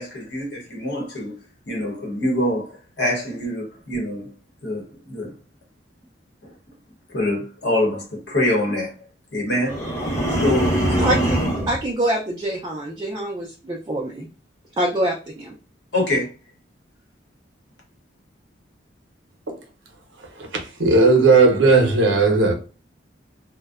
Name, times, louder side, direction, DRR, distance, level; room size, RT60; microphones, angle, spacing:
voice 1, 0.0-1.4 1.7-4.3 4.6-5.3 6.4-6.5 7.1-8.9 9.3-9.9 10.4-11.1 15.9-16.3, left 1 dB, 60° left, 0.9 m, -25 dB
sound 1, 9.7-11.8, right 1 dB, 15° left, 0.7 m, -22 dB
voice 2, 11.0-14.3 14.8-15.5, right 1 dB, 20° right, 0.3 m, -25 dB
voice 3, 20.8-22.5, right 3 dB, 80° right, 0.6 m, -15 dB
2.5 x 2.1 x 2.3 m
head